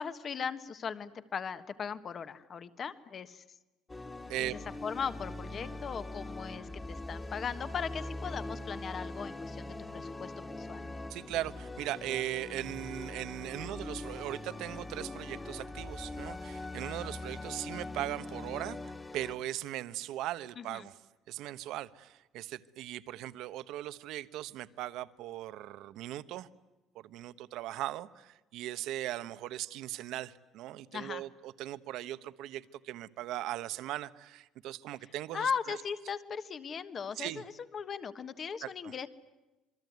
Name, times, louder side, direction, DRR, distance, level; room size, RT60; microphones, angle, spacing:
voice 1, 0.0-3.4 4.4-10.9 20.6-20.9 30.9-31.2 35.3-39.1, left 6 dB, 35° left, 12 dB, 1.4 m, -38 dB
sound 1, 3.9-19.4, left 2 dB, 15° left, 2.0 m, -42 dB
voice 2, 11.1-20.9 21.3-26.5 26.9-35.8 37.2-37.4 38.6-38.9, right 14 dB, 75° right, 14 dB, 1.1 m, -39 dB
27.0 x 23.0 x 9.5 m, 1.0 s
cardioid pair, 160°, 0 cm